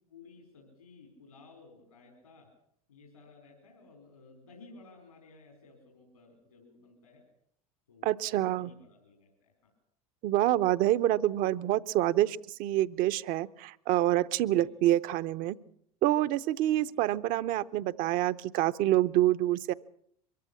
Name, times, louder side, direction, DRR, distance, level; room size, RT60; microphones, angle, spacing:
voice 1, 0.1-2.5 2.9-7.2 7.9-9.7 14.4-14.7 16.7-16.9, left 3 dB, 85° left, 2 dB, 4.6 m, -56 dB
voice 2, 8.0-8.7 10.2-15.6 16.0-19.7, right 14 dB, 50° right, 16 dB, 0.8 m, -27 dB
23.5 x 14.5 x 8.4 m, 0.67 s
figure-of-eight pair, 75°, 19 cm